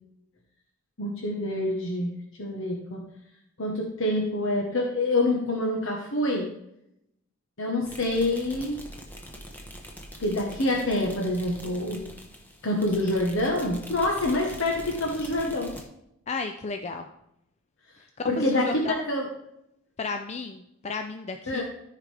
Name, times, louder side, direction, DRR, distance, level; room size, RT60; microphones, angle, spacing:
voice 1, 1.0-2.1 2.4-3.0 3.6-6.5 7.6-8.8 10.2-12.1 12.6-15.7 18.3-19.3 21.5-21.6, left 1 dB, 60° left, -1 dB, 1.2 m, -26 dB
sound 1, 7.8-15.8, equal, 10° left, 1.0 m, -44 dB
voice 2, 16.3-17.1 18.2-19.0 20.0-21.6, left 4 dB, 30° left, 6 dB, 0.4 m, -33 dB
14.0 x 4.9 x 3.3 m, 0.81 s
head